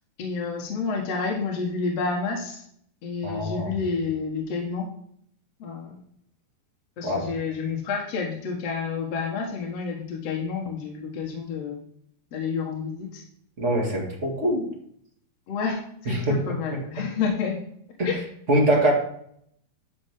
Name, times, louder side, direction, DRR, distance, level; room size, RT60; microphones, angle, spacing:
voice 1, 0.2-2.6 3.0-4.9 5.6-6.0 7.0-11.8 12.3-13.2 14.1-14.2 15.5-17.6 18.0-18.2, left 5 dB, 60° left, 0 dB, 1.9 m, -29 dB
voice 2, 3.2-3.7 7.0-7.3 13.6-14.6 16.0-16.4 18.0-18.1 18.5-18.9, right 1 dB, 25° right, -2 dB, 1.6 m, -23 dB
11.0 x 6.2 x 3.6 m, 0.67 s
omnidirectional pair, 4.5 m